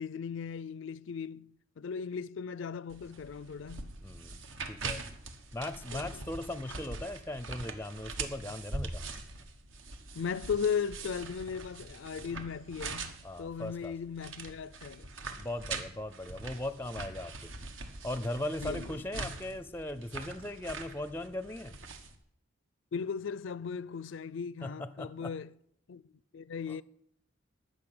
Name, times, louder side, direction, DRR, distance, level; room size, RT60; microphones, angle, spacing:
voice 1, 0.0-4.0 5.9-6.2 10.2-15.1 18.6-19.0 22.9-25.5 25.9-26.0 26.3-26.8, left 6 dB, 70° left, 0.4 m, -37 dB
sound 1, 2.9-22.2, right 3 dB, 80° right, 1.4 m, -43 dB
voice 2, 4.0-4.4 4.7-5.0 5.5-9.0 13.2-13.9 15.4-17.5 18.0-21.7 24.6-25.3 26.7-26.8, left 1 dB, 10° left, 0.5 m, -38 dB
13.5 x 6.6 x 8.8 m
head